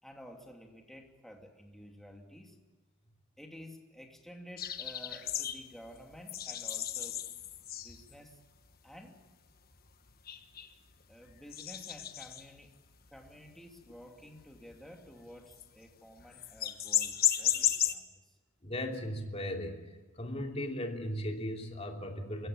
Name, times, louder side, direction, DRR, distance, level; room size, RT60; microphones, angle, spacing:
voice 1, 0.0-2.6 3.4-7.2 7.8-8.4 8.8-9.2 11.1-12.8 13.1-18.4, equal, ahead, 2 dB, 2.7 m, -52 dB
sound 1, 4.6-8.3 8.7-8.8 9.1-9.2 9.7-10.9 11.3-12.7 13.1-13.3 13.6-14.0 14.4-15.9 16.2-18.0, left 11 dB, 50° left, 1.3 m, -34 dB
voice 2, 18.6-19.8 20.1-22.5, left 1 dB, 30° left, 2 dB, 3.0 m, -37 dB
23.5 x 16.0 x 8.8 m, 1.3 s
head